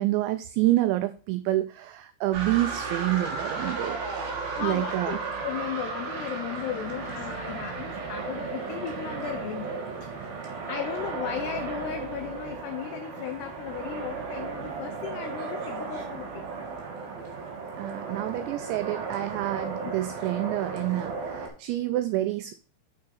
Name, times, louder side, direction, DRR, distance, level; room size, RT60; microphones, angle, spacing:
voice 1, 0.0-4.3 4.6-5.2 17.8-22.5, right 15 dB, 90° right, 2.5 m, -28 dB
sound 1, 2.3-21.5, right 4 dB, 60° right, 3.1 m, -35 dB
voice 2, 4.6-5.2 5.4-9.7 10.0-10.4 10.7-16.5 19.8-19.9, left 11 dB, 90° left, 2.3 m, -36 dB
7.0 x 6.5 x 4.1 m
omnidirectional pair, 5.7 m